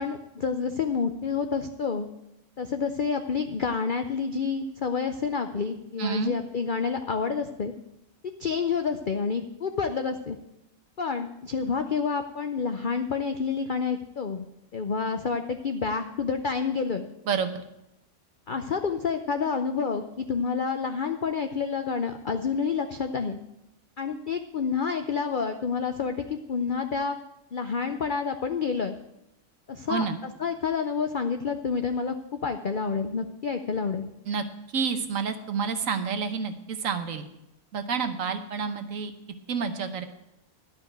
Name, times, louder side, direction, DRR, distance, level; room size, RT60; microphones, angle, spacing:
voice 1, 0.0-2.1 2.6-7.7 8.4-10.4 11.0-14.5 14.7-17.1 18.5-23.4 24.0-27.2 27.5-28.9 29.7-30.0 30.4-34.1, left 5 dB, 60° left, 7 dB, 0.5 m, -28 dB
voice 2, 6.0-6.4 17.2-17.6 29.9-30.2 34.2-34.4 34.7-37.3 37.7-39.1 39.5-40.0, right 5 dB, 60° right, 8 dB, 1.3 m, -29 dB
11.5 x 5.7 x 9.0 m, 0.88 s
omnidirectional pair, 1.7 m